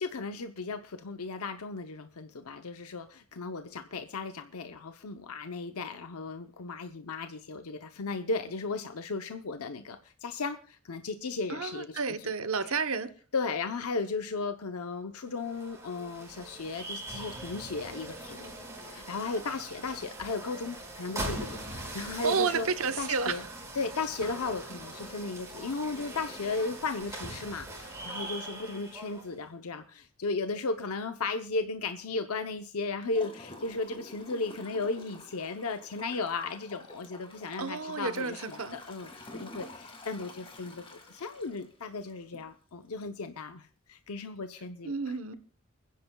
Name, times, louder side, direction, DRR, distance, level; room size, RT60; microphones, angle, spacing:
voice 1, 0.0-12.3 12.6-12.7 13.3-18.5 18.8-22.7 23.0-23.4 23.7-45.2, left 3 dB, 90° left, 0.8 m, -35 dB
voice 2, 11.5-13.1 22.2-23.4 37.6-38.8 44.8-45.4, right 5 dB, 75° right, 1.0 m, -31 dB
sound 1, 15.3-29.4, right 1 dB, 15° right, 4.9 m, -41 dB
Gurgling / Toilet flush, 33.1-42.5 43.0-43.1, left 2 dB, 25° left, 1.8 m, -49 dB
29.5 x 10.5 x 2.3 m
head